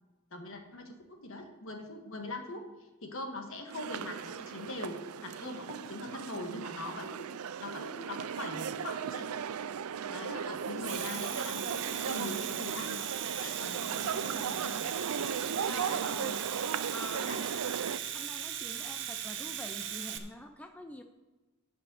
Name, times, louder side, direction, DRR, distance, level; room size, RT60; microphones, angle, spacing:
voice 1, 0.3-2.7 3.0-9.3 10.0-13.0 13.3-14.9 16.2-16.4 17.3-17.4, left 2 dB, 60° left, 3 dB, 1.5 m, -42 dB
sound 1, 3.7-18.0, right 7 dB, 70° right, 0.4 m, -37 dB
Domestic sounds home sounds, 10.7-20.2, right 10 dB, 55° right, 0.8 m, -38 dB
voice 2, 15.7-16.3 16.9-17.4 18.1-21.0, left 1 dB, 5° left, 5 dB, 0.4 m, -46 dB
11.0 x 5.4 x 6.9 m, 1.2 s
head